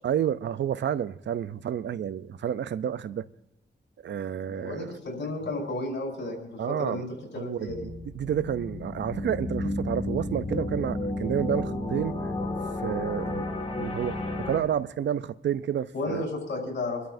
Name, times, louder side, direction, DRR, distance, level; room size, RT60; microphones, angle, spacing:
voice 1, 0.0-3.3 4.0-4.9 6.6-7.0 7.4-12.3 12.8-13.5 13.8-16.2, right 9 dB, 75° right, 0.5 m, -30 dB
voice 2, 4.4-7.1 7.3-7.8 13.7-13.8 15.9-17.0, left 2 dB, 80° left, 4.9 m, -33 dB
sound 1, 7.7-14.6, left 2 dB, 30° left, 1.9 m, -32 dB
26.5 x 12.5 x 2.6 m
wide cardioid pair, 110°, 19 cm